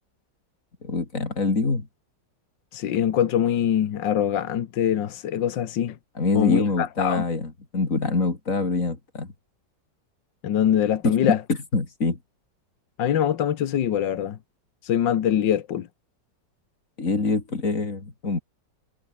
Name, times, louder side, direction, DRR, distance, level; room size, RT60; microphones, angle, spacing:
voice 1, 0.8-1.9 6.2-9.3 11.0-12.2 17.0-18.4, left 3 dB, 45° left, 3.7 m, -25 dB
voice 2, 2.7-6.0 6.4-7.2 10.4-11.4 13.0-14.4 14.8-15.9, left 10 dB, 80° left, 1.9 m, -23 dB
omnidirectional pair, 1.9 m